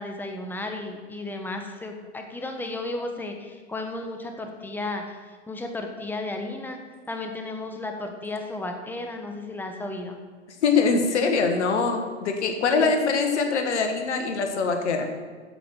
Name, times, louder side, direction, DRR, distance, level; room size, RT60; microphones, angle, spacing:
voice 1, 0.0-5.0 5.5-6.8 7.1-10.2 12.7-12.9, left 2 dB, 5° left, 4 dB, 1.2 m, -33 dB
voice 2, 10.6-15.1, left 4 dB, 75° left, 5 dB, 1.6 m, -23 dB
8.8 x 7.6 x 6.4 m, 1.5 s
hypercardioid pair, 95°, 35 cm